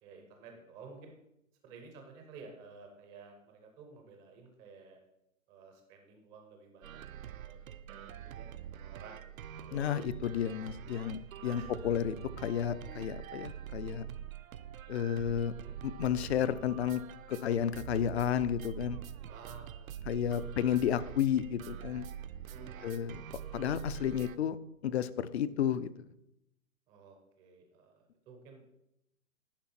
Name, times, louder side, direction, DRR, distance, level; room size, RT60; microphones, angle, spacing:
voice 1, 0.0-1.1 1.6-5.0 5.5-7.6 7.9-8.5 8.7-9.8 11.4-11.7 15.5-15.7 19.3-20.4 22.5-23.3 26.9-28.7, right 4 dB, 10° right, 3 dB, 0.4 m, -53 dB
sound 1, 6.8-24.4, right 10 dB, 80° right, 0.6 m, -45 dB
voice 2, 9.7-14.1 14.9-15.5 15.8-17.0 17.3-19.0 20.1-22.1 22.8-23.2 23.5-24.6 24.8-25.9, left 9 dB, 50° left, 15 dB, 0.5 m, -32 dB
10.0 x 5.1 x 4.3 m, 0.83 s
hypercardioid pair, 145°, 41 cm